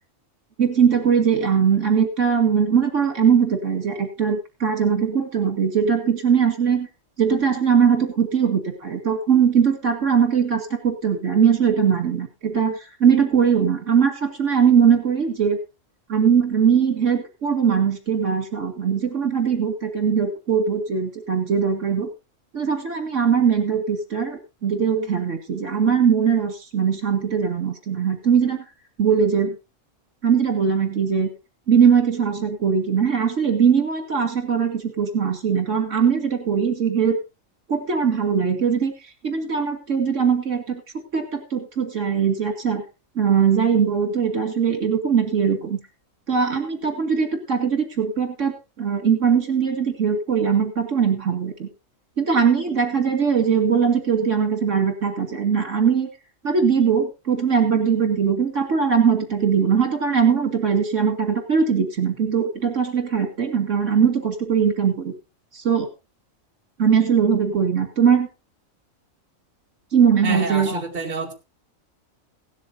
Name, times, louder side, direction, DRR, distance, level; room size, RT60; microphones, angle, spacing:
voice 1, 0.6-6.9 7.2-15.6 16.1-22.1 22.5-28.6 29.0-29.6 30.2-31.3 31.7-37.2 37.7-38.9 39.2-40.8 41.1-42.8 43.2-45.8 46.3-51.7 52.2-56.1 56.4-65.1 65.5-65.9 66.8-68.3 69.9-70.8, right 7 dB, 65° right, 6 dB, 2.5 m, -20 dB
voice 2, 70.2-71.3, right 2 dB, 35° right, 1 dB, 2.4 m, -27 dB
17.0 x 12.5 x 2.7 m, 0.27 s
omnidirectional pair, 1.4 m